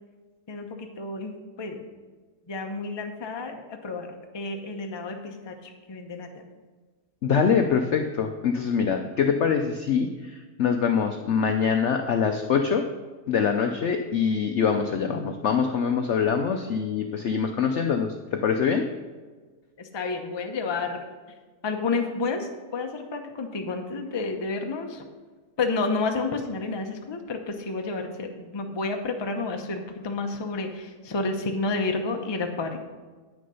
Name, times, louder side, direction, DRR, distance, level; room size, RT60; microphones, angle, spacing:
voice 1, 0.5-1.3 1.6-1.8 2.5-6.3 19.8-21.0 21.6-25.0 25.6-32.8, left 3 dB, 30° left, 4 dB, 0.5 m, -30 dB
voice 2, 7.2-12.8 13.3-18.9, left 6 dB, 65° left, 5 dB, 0.7 m, -24 dB
9.5 x 6.4 x 5.5 m, 1.4 s
omnidirectional pair, 1.8 m